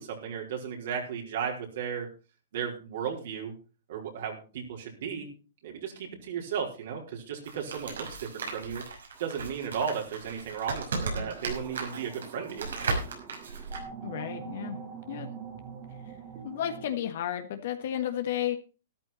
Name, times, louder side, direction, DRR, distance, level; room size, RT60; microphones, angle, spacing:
voice 1, 0.0-2.1 2.5-3.5 3.9-5.3 5.6-8.8 9.2-12.7, right 7 dB, 65° right, 0 dB, 4.6 m, -35 dB
sound 1, 7.4-13.8, right 3 dB, 85° right, 5.6 m, -36 dB
sound 2, 9.1-16.9, right 7 dB, 35° right, 2.2 m, -45 dB
voice 2, 14.0-14.8 15.1-15.3 16.4-18.6, left 11 dB, 60° left, 7 dB, 1.5 m, -32 dB
13.0 x 11.5 x 4.3 m, 0.35 s
hypercardioid pair, 140°, 0 cm